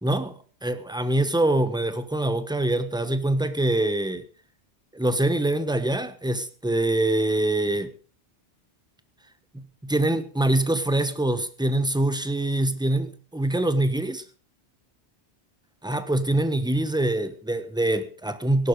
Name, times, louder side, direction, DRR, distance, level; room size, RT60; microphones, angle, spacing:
voice 1, 0.0-4.2 4.9-7.9 9.5-14.2 15.8-18.7, right 1 dB, 5° right, 1.2 m, -24 dB
17.5 x 11.5 x 5.2 m
omnidirectional pair, 1.2 m